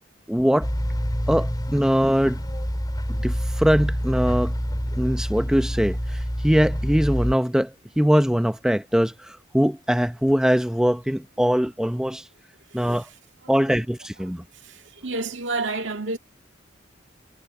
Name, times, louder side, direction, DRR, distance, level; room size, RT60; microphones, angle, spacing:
voice 1, 0.3-0.7 1.3-2.4 3.1-4.5 5.0-12.3 12.7-13.1 13.5-14.4, equal, 5° right, 0.6 m, -22 dB
sound 1, 0.6-7.4, equal, 20° left, 5.3 m, -27 dB
voice 2, 14.6-16.2, right 3 dB, 70° right, 1.9 m, -29 dB
head